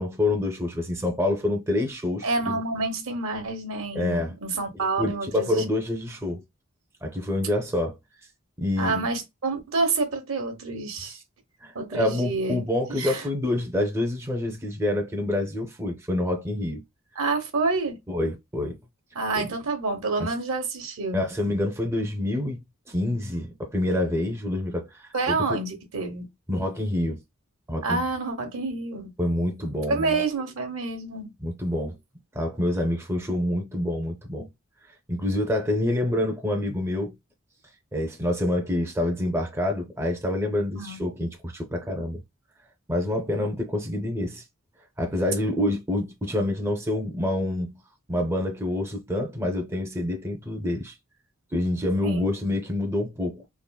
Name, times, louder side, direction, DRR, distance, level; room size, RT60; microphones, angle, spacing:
voice 1, 0.0-2.6 3.9-4.3 4.7-6.4 7.0-7.9 8.6-9.1 11.0-11.2 11.6-16.8 18.1-18.8 19.3-19.5 20.2-20.3 21.1-25.6 26.5-27.2 27.7-28.0 29.2-30.2 31.4-32.0 32.3-34.5 35.1-37.2 37.9-42.2 42.9-44.4 45.0-47.8 48.1-51.0 51.5-53.5, left 1 dB, 10° right, 0.5 m, -27 dB
voice 2, 2.2-5.6 8.8-11.2 11.7-12.6 13.0-13.2 17.2-18.0 19.1-21.3 25.1-26.3 27.8-29.1 29.9-31.3 40.8-41.0 52.0-52.3, right 3 dB, 70° right, 0.9 m, -28 dB
3.6 x 2.0 x 2.2 m
head